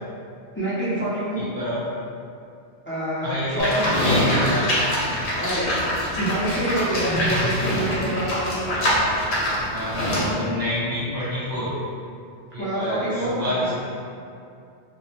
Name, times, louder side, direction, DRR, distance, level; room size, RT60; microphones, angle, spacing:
voice 1, 0.5-1.4 2.9-4.0 5.4-8.8 12.6-13.7, right 1 dB, 20° left, -11 dB, 0.4 m, -27 dB
voice 2, 1.4-1.8 3.2-4.7 7.0-7.5 8.7-9.1 9.7-11.7 12.5-13.7, left 1 dB, 55° right, -12 dB, 1.4 m, -27 dB
Livestock farm animals working animals, 3.6-10.3, equal, 55° left, 0.8 m, -24 dB
2.6 x 2.0 x 3.1 m, 2.5 s
omnidirectional pair, 1.1 m